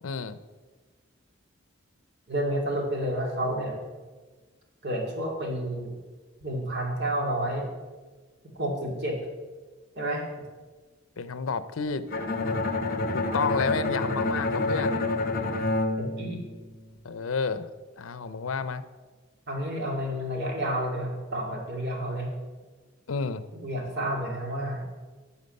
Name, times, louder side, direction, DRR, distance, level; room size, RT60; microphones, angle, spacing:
voice 1, 0.0-0.4 11.2-12.1 13.1-15.1 17.0-17.7 18.0-18.8 23.1-23.4, left 5 dB, 85° left, 14 dB, 0.6 m, -31 dB
voice 2, 2.3-3.8 4.8-6.0 6.4-7.7 8.5-9.2 10.0-10.3 16.0-16.4 19.5-22.3 23.6-24.9, right 1 dB, 55° right, 1 dB, 2.3 m, -30 dB
Bowed string instrument, 12.1-17.0, left 2 dB, 45° left, 1.0 m, -28 dB
12.0 x 7.1 x 5.4 m, 1.3 s
head